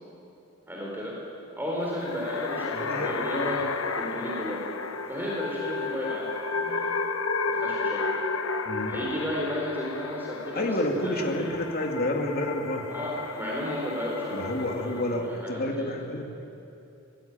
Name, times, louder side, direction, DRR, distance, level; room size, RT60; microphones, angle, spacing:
voice 1, 0.7-1.2 1.5-4.6 5.1-6.9 7.5-8.1 8.8-10.6 11.0-11.5 12.9-15.9, left 1 dB, 10° right, -4 dB, 4.1 m, -33 dB
sound 1, 1.8-15.2, left 4 dB, 80° left, 1.2 m, -33 dB
voice 2, 2.7-3.5 8.6-9.0 10.5-12.9 14.3-16.3, left 1 dB, 50° left, 2 dB, 2.8 m, -29 dB
22.5 x 20.0 x 9.2 m, 2.8 s
head